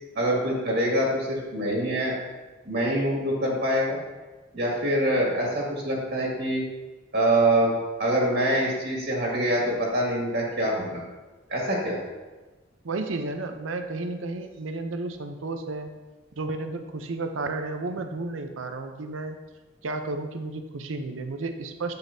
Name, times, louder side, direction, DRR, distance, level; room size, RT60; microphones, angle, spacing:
voice 1, 0.2-2.1 2.7-4.0 4.5-6.6 7.1-7.7 8.0-11.0 11.5-12.0, right 1 dB, 55° right, -3 dB, 2.0 m, -25 dB
voice 2, 12.8-15.9 16.4-19.4 19.8-22.0, right 3 dB, 80° right, 6 dB, 0.7 m, -32 dB
9.2 x 7.2 x 2.7 m, 1.2 s
head